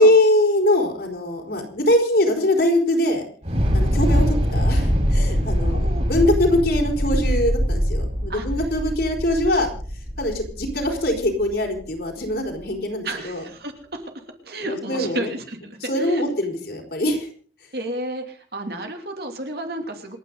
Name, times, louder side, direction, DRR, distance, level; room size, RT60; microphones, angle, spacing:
voice 1, 0.0-3.3 3.7-9.7 10.2-13.4 14.6-15.3 15.8-17.3, left 1 dB, 55° left, 2 dB, 4.6 m, -22 dB
Thunder / Explosion, 3.4-11.6, equal, 35° right, 5.1 m, -23 dB
voice 2, 5.7-6.0 8.3-8.5 13.0-14.0 14.4-16.2 17.7-20.2, right 1 dB, 55° right, 4 dB, 3.0 m, -32 dB
28.0 x 9.9 x 4.0 m, 0.42 s
head